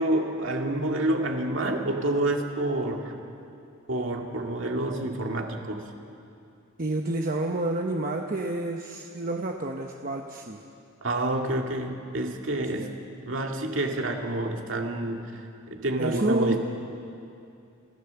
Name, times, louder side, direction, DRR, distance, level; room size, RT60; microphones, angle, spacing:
voice 1, 0.0-3.1 3.9-5.8 11.0-12.9 13.3-15.2 15.7-16.6, right 1 dB, 65° right, 2 dB, 2.3 m, -28 dB
voice 2, 6.8-10.6 12.7-13.0 16.0-16.6, right 2 dB, 40° right, 2 dB, 1.0 m, -29 dB
26.5 x 15.0 x 7.1 m, 2.6 s
head